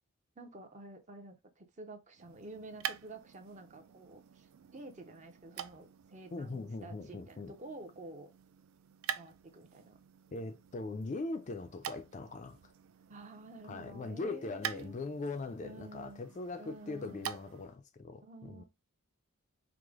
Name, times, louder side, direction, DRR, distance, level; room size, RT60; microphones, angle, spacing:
voice 1, 0.4-8.3 9.1-10.0 13.1-14.9 15.6-16.2 16.6-17.3 18.2-18.6, right 2 dB, 35° right, 0.6 m, -50 dB
sound 1, 2.1-17.8, right 9 dB, 75° right, 0.4 m, -47 dB
voice 2, 6.3-7.5 10.3-12.6 13.7-18.6, left 3 dB, 35° left, 0.3 m, -40 dB
4.7 x 2.0 x 3.5 m
head